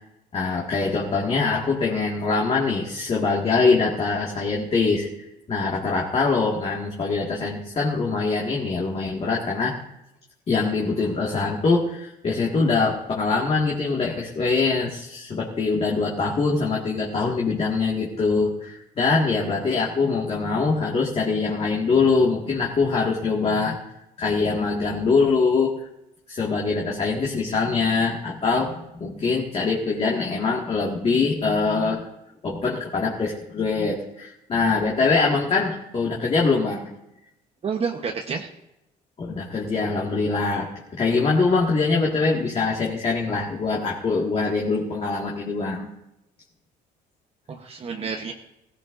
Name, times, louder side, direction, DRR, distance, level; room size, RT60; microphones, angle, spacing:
voice 1, 0.3-5.1 5.5-9.8 10.5-23.8 24.2-25.8 26.3-32.0 32.4-36.9 39.2-45.9, left 4 dB, 35° left, -3 dB, 1.8 m, -23 dB
voice 2, 37.6-38.5 47.5-48.3, right 5 dB, 35° right, 3 dB, 1.0 m, -29 dB
16.5 x 15.0 x 2.6 m, 0.87 s
cardioid pair, 110°, 17 cm